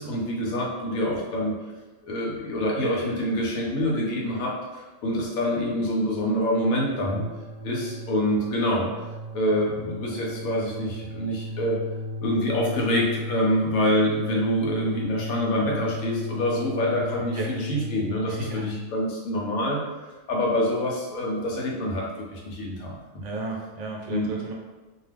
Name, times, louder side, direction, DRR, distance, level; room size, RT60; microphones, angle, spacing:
voice 1, 0.0-1.6 2.0-7.2 7.6-8.9 9.3-11.8 12.2-19.8 20.3-23.2 24.1-24.3, equal, 85° left, -3 dB, 1.1 m, -26 dB
sound 1, 6.9-18.8, left 1 dB, 40° right, 0.8 m, -35 dB
voice 2, 18.2-18.7 23.2-24.5, right 3 dB, 70° right, -1 dB, 0.9 m, -33 dB
2.5 x 2.3 x 3.3 m, 1.2 s
omnidirectional pair, 1.4 m